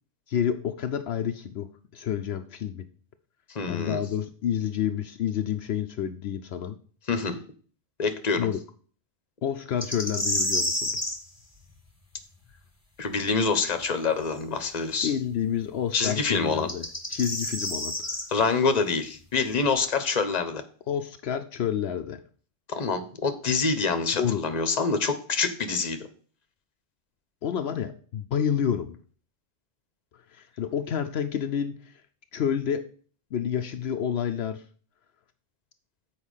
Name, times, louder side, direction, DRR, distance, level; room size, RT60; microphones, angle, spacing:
voice 1, 0.3-2.8 3.7-6.8 8.4-8.6 9.4-10.9 15.0-16.8 17.1-18.2 20.9-22.2 24.2-24.4 27.4-29.0 30.1-32.0 32.3-32.8 33.3-34.6, left 8 dB, 75° left, 7 dB, 0.9 m, -29 dB
voice 2, 3.5-4.0 7.1-7.4 8.0-8.5 13.0-15.1 15.9-16.7 18.3-20.6 22.7-26.1, left 4 dB, 40° left, 8 dB, 1.0 m, -26 dB
sound 1, 9.8-11.2 14.3-14.4 16.5-18.2, left 1 dB, 15° left, 1.6 m, -29 dB
7.2 x 4.7 x 6.4 m, 0.43 s
omnidirectional pair, 1.1 m